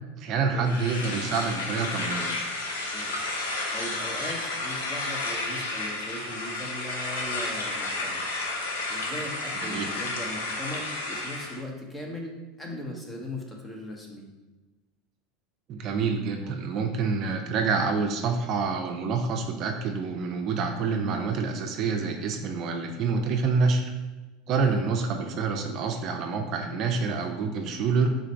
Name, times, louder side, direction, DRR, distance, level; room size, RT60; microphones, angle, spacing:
voice 1, 0.2-2.4 9.6-9.9 15.7-23.9 24.5-28.1, right 4 dB, 50° right, 4 dB, 0.4 m, -27 dB
sound 1, 0.6-11.6, left 2 dB, 90° left, 0.7 m, -32 dB
voice 2, 3.7-8.2 8.9-14.3 16.4-16.6 24.5-24.8, left 1 dB, 15° left, 0 dB, 0.9 m, -39 dB
3.9 x 2.5 x 4.4 m, 1.2 s
hypercardioid pair, 95°, 0 cm